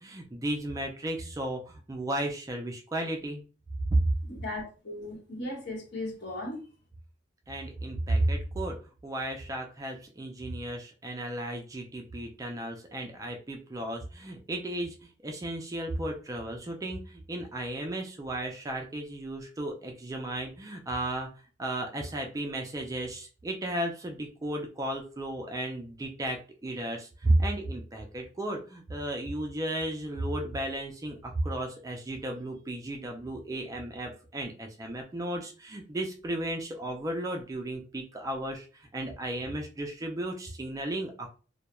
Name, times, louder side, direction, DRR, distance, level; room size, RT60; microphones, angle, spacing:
voice 1, 0.0-3.4 3.9-4.1 7.5-8.8 9.0-21.3 21.6-41.4, right 1 dB, 15° right, 3 dB, 0.3 m, -33 dB
voice 2, 4.3-6.7, left 1 dB, 60° left, -2 dB, 1.0 m, -37 dB
2.2 x 2.1 x 2.9 m, 0.35 s
head